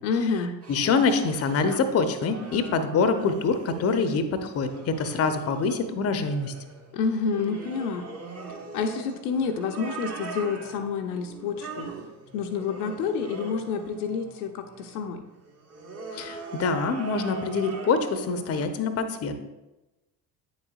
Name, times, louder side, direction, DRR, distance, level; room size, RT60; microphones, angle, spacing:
voice 1, 0.0-0.5 6.9-8.1 8.7-11.9 12.3-15.2, left 5 dB, 65° left, 5 dB, 0.7 m, -28 dB
sound 1, 0.6-18.7, right 4 dB, 30° right, 1.3 m, -42 dB
voice 2, 0.7-6.5 16.1-19.4, left 4 dB, 30° left, 9 dB, 0.7 m, -25 dB
9.0 x 7.1 x 2.4 m, 1.0 s
figure-of-eight pair, 55°, 49 cm